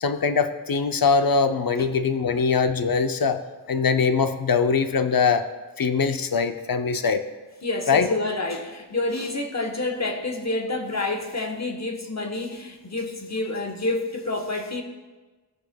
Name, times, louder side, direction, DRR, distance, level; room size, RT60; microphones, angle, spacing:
voice 1, 0.0-3.4 3.7-5.4 5.8-7.2 7.9-8.1, left 5 dB, 60° left, 8 dB, 0.6 m, -22 dB
voice 2, 7.6-14.8, left 2 dB, 40° left, 4 dB, 1.1 m, -28 dB
15.5 x 6.2 x 2.2 m, 1.3 s
wide cardioid pair, 60°, 40 cm